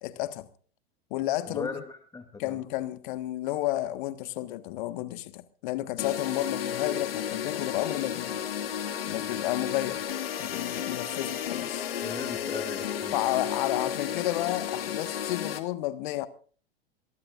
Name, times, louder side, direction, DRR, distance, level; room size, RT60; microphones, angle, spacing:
voice 1, 0.0-0.5 1.1-1.8 2.4-8.4 9.1-10.0 10.4-11.9 13.1-16.3, left 15 dB, 50° left, 1.5 m, -31 dB
voice 2, 1.5-2.6 12.0-13.2, left 3 dB, 10° left, 2.6 m, -38 dB
sound 1, 6.0-15.6, left 9 dB, 65° left, 2.2 m, -33 dB
23.5 x 22.0 x 2.5 m
figure-of-eight pair, 90°, 31 cm